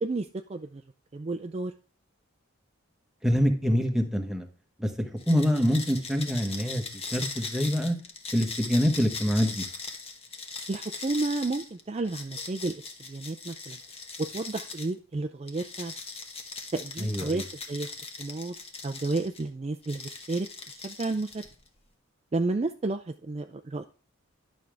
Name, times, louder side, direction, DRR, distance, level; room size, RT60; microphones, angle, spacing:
voice 1, 0.0-0.8 1.1-1.7 10.7-13.8 14.2-15.9 16.7-17.9 18.2-18.5 18.8-20.5 20.8-21.4 22.3-23.9, right 2 dB, 30° right, 7 dB, 0.4 m, -31 dB
voice 2, 3.2-4.5 4.8-6.8 7.1-8.0 8.3-9.6 17.0-17.4, equal, ahead, 3 dB, 1.0 m, -25 dB
sound 1, 5.2-14.9 15.5-19.4 19.8-21.7, left 4 dB, 30° left, 1.1 m, -40 dB
11.0 x 6.3 x 3.4 m, 0.37 s
head